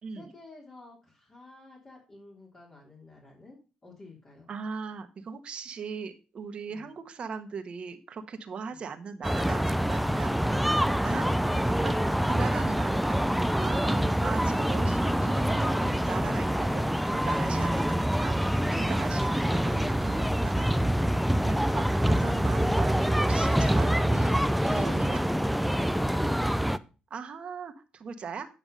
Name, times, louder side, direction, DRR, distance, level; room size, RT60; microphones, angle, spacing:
voice 1, 0.1-4.5 6.7-6.9 8.7-8.8 21.2-21.6 26.1-26.5, left 2 dB, 30° left, -3 dB, 3.4 m, -50 dB
voice 2, 4.5-10.3 11.0-11.3 11.6-13.2 13.6-18.4 18.7-21.2 21.4-24.3 24.6-25.2 27.1-28.5, right 5 dB, 50° right, 8 dB, 1.4 m, -39 dB
sound 1, 9.2-26.8, equal, ahead, 0.5 m, -26 dB
9.4 x 5.9 x 5.4 m, 0.33 s
cardioid pair, 80°, 2 cm